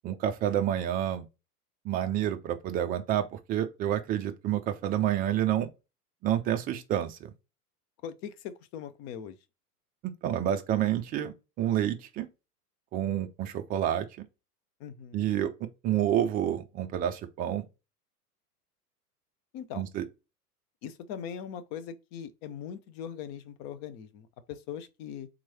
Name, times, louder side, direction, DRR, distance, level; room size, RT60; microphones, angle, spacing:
voice 1, 0.0-1.3 1.8-5.7 6.2-7.3 10.2-12.3 12.9-14.3 15.1-15.5 15.8-17.6 19.7-20.0, right 11 dB, 20° right, 0.4 m, -29 dB
voice 2, 8.0-9.4 14.8-15.3 19.5-19.8 20.8-25.3, left 8 dB, 35° left, 0.6 m, -40 dB
3.9 x 3.1 x 4.1 m
figure-of-eight pair, 90°, 47 cm